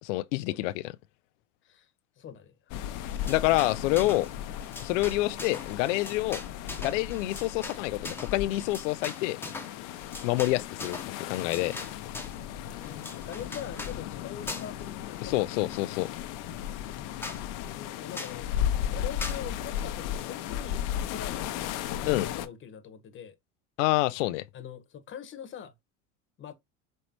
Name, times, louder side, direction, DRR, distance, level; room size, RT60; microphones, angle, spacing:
voice 1, 0.0-1.0 3.3-4.3 4.8-6.4 6.8-9.4 10.2-11.0 11.3-11.8 15.2-16.1 22.1-22.3 23.8-24.4, left 18 dB, 85° left, 0.5 m, -27 dB
voice 2, 2.2-2.7 12.7-15.4 16.9-23.3 24.5-25.7 26.4-26.5, left 8 dB, 35° left, 1.2 m, -43 dB
sound 1, 2.7-22.5, left 11 dB, 60° left, 0.8 m, -36 dB
sound 2, 3.0-4.3 4.6-12.4 12.8-14.0 14.5-14.9 15.1-16.1 16.6-16.7 16.9-17.0 17.2-17.4 18.1-18.4 19.2-19.4, left 2 dB, 5° left, 1.0 m, -41 dB
5.3 x 3.2 x 2.9 m
supercardioid pair, 120°, 36 cm